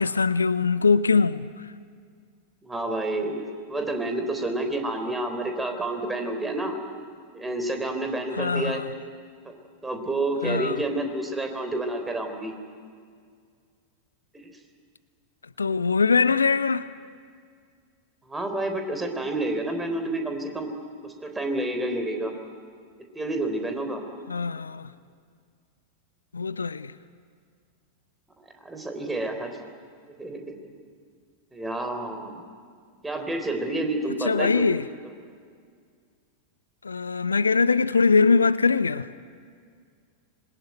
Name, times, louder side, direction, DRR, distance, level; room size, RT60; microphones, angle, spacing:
voice 1, 0.0-1.5 8.4-8.8 10.4-10.7 15.6-16.9 24.3-24.9 26.3-26.9 34.3-34.8 36.8-39.1, left 4 dB, 75° left, 0.6 m, -22 dB
voice 2, 2.6-6.8 7.3-8.8 9.8-12.5 18.3-20.7 21.0-22.3 23.1-24.0 28.6-29.5 30.2-30.5 31.5-32.4 33.0-34.6, right 2 dB, 10° right, 3.6 m, -29 dB
25.5 x 21.5 x 9.3 m
figure-of-eight pair, 90°, 0 cm